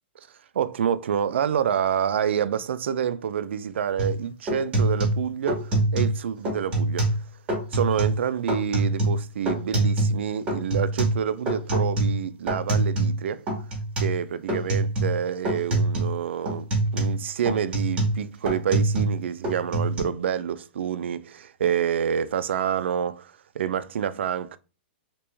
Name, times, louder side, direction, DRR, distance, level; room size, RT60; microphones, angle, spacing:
voice 1, 0.5-7.1 7.7-13.4 14.0-16.6 16.9-24.6, right 8 dB, 85° right, 0.4 m, -27 dB
sound 1, 4.0-4.2 4.5-6.2 6.4-7.2 7.5-8.2 8.5-10.2 10.5-13.2 13.5-14.2 14.5-15.2 15.4-16.1 16.4-19.2 19.4-20.0, right 2 dB, 15° right, 1.2 m, -24 dB
3.0 x 2.9 x 3.3 m
hypercardioid pair, 165°, 6 cm